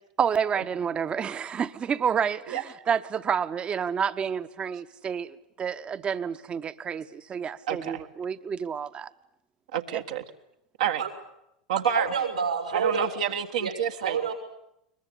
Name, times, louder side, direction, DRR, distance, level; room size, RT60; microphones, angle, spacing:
voice 1, 0.2-9.1, right 7 dB, 30° right, 12 dB, 1.1 m, -29 dB
voice 2, 7.7-8.0 9.7-10.2 10.8-11.0 11.7-12.1 12.7-14.2, right 8 dB, 70° right, 4 dB, 1.7 m, -28 dB
voice 3, 11.9-13.1 13.6-13.7 14.0-14.3, right 6 dB, 90° right, 4 dB, 6.2 m, -27 dB
22.0 x 21.5 x 10.0 m, 0.80 s
figure-of-eight pair, 80°, 4 cm